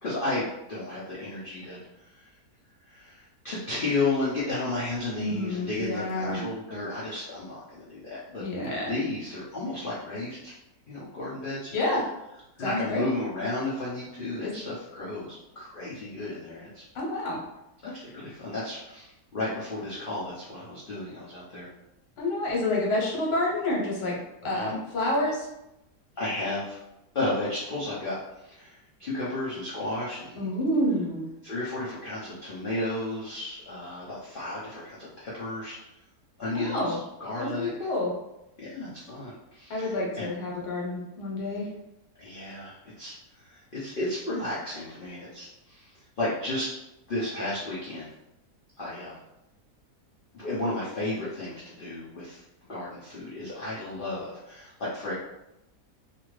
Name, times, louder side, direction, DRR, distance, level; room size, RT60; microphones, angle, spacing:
voice 1, 0.0-2.3 2.8-8.4 8.9-10.5 10.9-11.7 12.6-16.8 17.8-21.7 24.5-24.8 26.2-26.8 27.1-30.5 31.4-35.8 36.4-37.9 38.6-40.3 42.2-46.7 47.1-48.1 48.8-49.2 50.3-52.4 52.7-55.1, left 2 dB, 60° left, -8 dB, 0.5 m, -33 dB
voice 2, 5.2-6.4 8.4-8.9 11.7-12.0 12.6-13.0 14.4-14.5 16.9-17.4 22.2-24.2 24.4-25.5 30.4-31.3 36.5-37.0 37.4-38.1 39.7-41.7, left 1 dB, 75° left, -3 dB, 1.5 m, -28 dB
2.7 x 2.5 x 3.1 m, 0.90 s
omnidirectional pair, 1.8 m